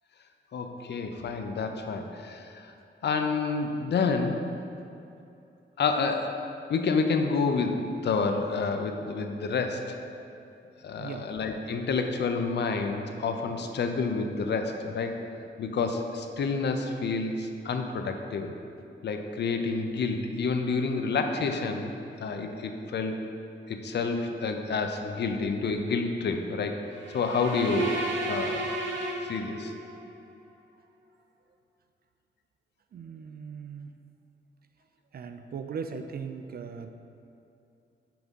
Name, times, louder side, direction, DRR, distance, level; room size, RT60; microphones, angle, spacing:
voice 1, 0.5-2.7 3.0-4.5 5.8-6.3 6.7-9.8 10.8-15.2 15.6-18.5 19.0-21.9 22.2-23.2 23.7-26.8 27.1-28.7 29.2-29.7, left 4 dB, 65° left, 5 dB, 0.5 m, -29 dB
voice 2, 11.0-11.3 32.9-33.9 35.1-36.9, right 6 dB, 55° right, 8 dB, 0.4 m, -38 dB
sound 1, 26.9-30.0, right 2 dB, 80° right, 0.9 m, -33 dB
5.9 x 3.6 x 5.3 m, 2.7 s
wide cardioid pair, 140°, 19 cm